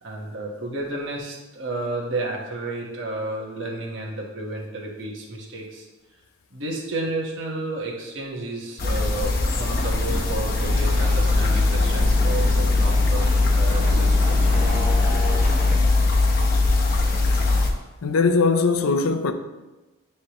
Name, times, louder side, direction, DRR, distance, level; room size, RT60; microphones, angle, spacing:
voice 1, 0.0-5.9 6.5-15.4, right 2 dB, 60° right, 1.2 m, -32 dB
sound 1, 8.8-17.7, left 2 dB, 45° left, 0.8 m, -20 dB
sound 2, 10.1-15.7, equal, 10° right, 0.7 m, -35 dB
voice 2, 18.0-19.3, left 4 dB, 75° left, 0.5 m, -20 dB
9.7 x 3.3 x 3.0 m
head